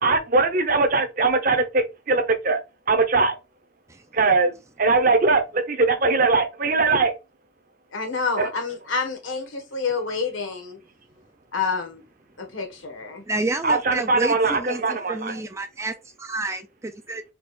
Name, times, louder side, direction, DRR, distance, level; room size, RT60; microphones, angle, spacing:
voice 1, 0.0-2.6 2.9-3.4 4.1-7.1 8.4-8.5 13.6-15.3, right 3 dB, 45° right, 0.8 m, -21 dB
voice 2, 7.9-10.8 11.5-12.0 12.4-13.2, left 4 dB, 75° left, 1.4 m, -28 dB
voice 3, 13.3-17.2, right 2 dB, 15° right, 0.3 m, -30 dB
4.4 x 2.4 x 4.2 m
head